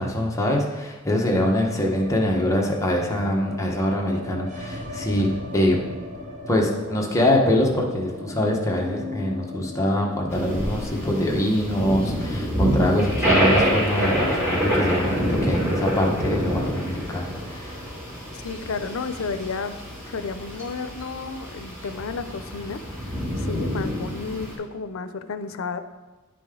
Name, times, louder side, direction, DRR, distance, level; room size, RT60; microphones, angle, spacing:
voice 1, 0.0-5.8 6.5-17.7, left 1 dB, 15° left, -1 dB, 1.1 m, -24 dB
sound 1, 1.6-17.7 17.9-18.0 18.3-19.0, left 2 dB, 35° right, 1.0 m, -39 dB
sound 2, 10.3-24.5, equal, 15° right, 2.7 m, -26 dB
voice 2, 18.3-19.8 20.1-23.1 23.4-25.8, left 4 dB, 80° left, 11 dB, 0.5 m, -32 dB
10.5 x 5.1 x 3.7 m, 1.2 s
head